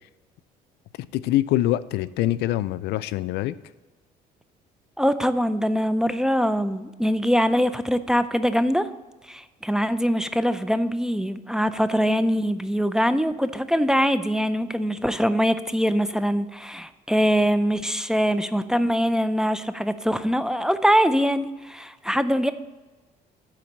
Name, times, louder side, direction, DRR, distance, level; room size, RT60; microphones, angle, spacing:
voice 1, 1.1-3.5, left 14 dB, 80° left, 16 dB, 0.4 m, -24 dB
voice 2, 5.0-8.9 9.3-22.5, equal, 5° right, 10 dB, 0.4 m, -23 dB
9.6 x 3.9 x 7.3 m, 1.2 s
cardioid pair, 110°, 17 cm